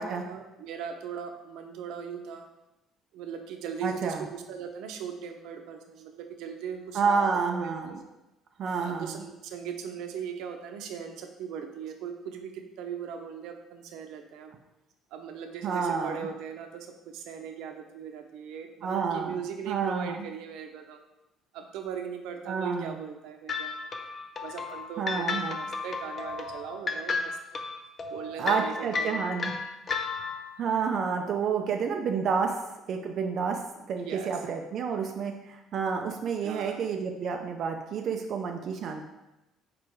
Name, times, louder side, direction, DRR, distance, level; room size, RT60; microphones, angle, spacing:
voice 1, 0.0-2.4 3.1-7.9 8.8-14.6 15.1-21.0 21.5-23.8 24.4-27.4 28.1-29.4 34.0-34.3 36.4-36.8, right 7 dB, 85° right, 5 dB, 0.7 m, -39 dB
voice 2, 3.8-4.3 6.9-8.0 8.6-9.2 15.6-16.3 18.8-19.4 19.7-20.3 22.5-23.0 25.0-25.6 28.4-29.6 30.6-32.5 32.9-33.6 33.9-39.0, right 5 dB, 45° right, 3 dB, 0.5 m, -29 dB
sound 1, 23.5-30.6, left 4 dB, 25° left, 0.5 m, -33 dB
4.9 x 4.7 x 4.6 m, 0.96 s
cardioid pair, 165°, 0 cm